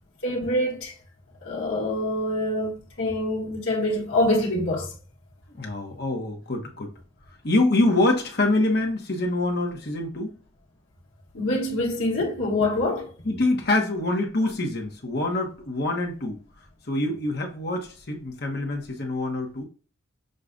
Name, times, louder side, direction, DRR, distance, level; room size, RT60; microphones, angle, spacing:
voice 1, 0.2-0.9 1.4-4.9 11.3-13.1, left 1 dB, 75° left, 1.4 m, -25 dB
voice 2, 5.5-6.9 7.4-10.3 13.2-16.4 16.9-19.7, left 2 dB, 50° left, 1.0 m, -25 dB
6.5 x 2.3 x 2.5 m
head